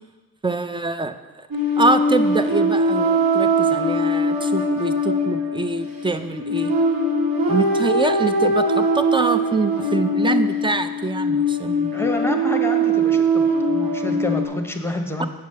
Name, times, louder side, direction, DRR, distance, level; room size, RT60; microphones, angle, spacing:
voice 1, 0.4-1.5 1.8-6.7 7.4-12.1 15.2-15.3, right 3 dB, 15° right, 10 dB, 0.4 m, -25 dB
sound 1, 1.5-14.5, right 1 dB, 70° right, 1.8 m, -21 dB
voice 2, 11.9-15.3, left 1 dB, 5° left, 4 dB, 0.9 m, -28 dB
8.1 x 5.1 x 6.6 m, 1.3 s
cardioid pair, 95°, 36 cm